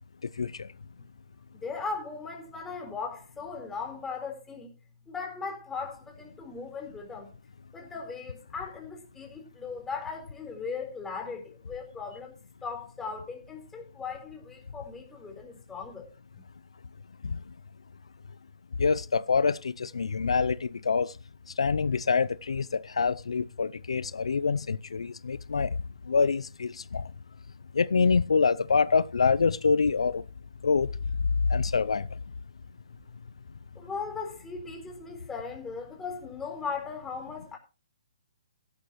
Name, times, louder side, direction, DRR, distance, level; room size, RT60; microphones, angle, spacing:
voice 1, 0.4-0.7 17.2-17.4 18.8-21.1 21.6-25.8 26.1-27.0 27.7-30.2 30.6-30.9 31.4-32.1, left 5 dB, 75° left, 0.5 m, -26 dB
voice 2, 1.5-4.7 5.1-7.3 7.7-12.3 12.6-16.1 33.7-37.6, left 5 dB, 10° left, 4.2 m, -38 dB
15.5 x 11.5 x 3.1 m
hypercardioid pair, 140°, 3 cm